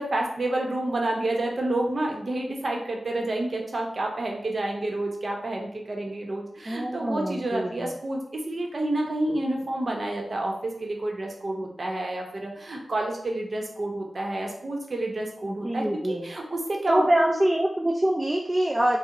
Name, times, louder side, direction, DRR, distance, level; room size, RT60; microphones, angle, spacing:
voice 1, 0.0-17.4, right 1 dB, 55° right, 0 dB, 0.7 m, -29 dB
voice 2, 6.7-7.7 15.4-16.3 16.9-19.0, right 1 dB, 20° right, 1 dB, 0.4 m, -24 dB
4.4 x 2.0 x 2.5 m, 0.70 s
cardioid pair, 55°, 0 cm